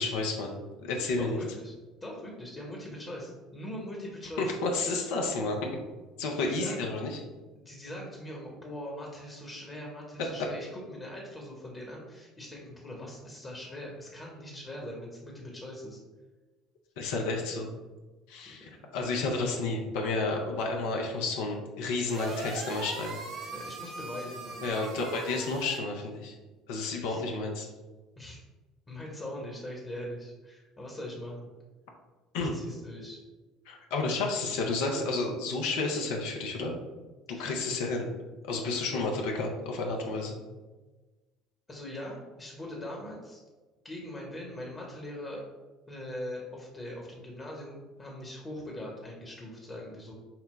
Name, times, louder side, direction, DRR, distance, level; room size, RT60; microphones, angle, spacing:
voice 1, 0.0-1.4 4.4-5.6 6.2-7.2 17.0-17.7 18.3-23.2 24.6-26.3 26.7-27.7 32.3-32.5 33.7-36.8 37.3-38.1 38.5-40.4, left 3 dB, 60° left, 1 dB, 0.6 m, -31 dB
voice 2, 1.2-1.7 2.0-4.6 6.5-6.8 7.5-16.0 18.4-18.8 23.5-25.1 27.1-27.2 28.2-28.4 28.9-31.5 32.4-33.2 37.3-37.5 38.9-39.1 41.7-43.4 43.8-45.4 45.9-50.1, left 1 dB, 25° left, -2 dB, 1.1 m, -41 dB
sound 1, 22.0-25.8, right 3 dB, 50° right, 0.7 m, -40 dB
5.8 x 2.2 x 4.2 m, 1.2 s
figure-of-eight pair, 60°, 0 cm